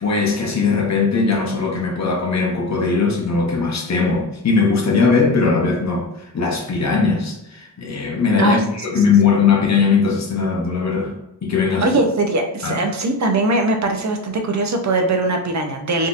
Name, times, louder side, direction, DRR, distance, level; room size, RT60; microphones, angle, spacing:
voice 1, 0.0-11.1 11.4-11.9 12.6-12.8, left 4 dB, 45° left, 1 dB, 0.7 m, -19 dB
voice 2, 11.8-16.1, right 2 dB, 45° right, 4 dB, 0.5 m, -20 dB
3.6 x 2.7 x 2.4 m, 0.90 s
wide cardioid pair, 150°, 39 cm